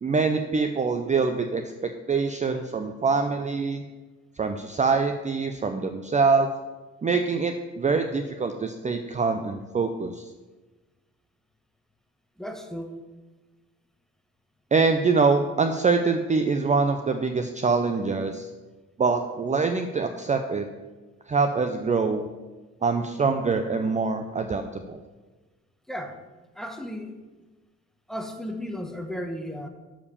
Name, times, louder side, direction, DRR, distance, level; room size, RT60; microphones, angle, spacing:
voice 1, 0.0-3.8 4.4-6.5 7.0-10.2 14.7-18.5 19.0-20.7 21.3-22.3 22.8-25.0, right 4 dB, 25° right, 7 dB, 0.5 m, -24 dB
voice 2, 12.4-13.0 25.9-26.2 26.5-27.1 28.1-29.7, equal, ahead, 6 dB, 0.9 m, -34 dB
7.1 x 4.9 x 6.8 m, 1.2 s
cardioid pair, 90°, 30 cm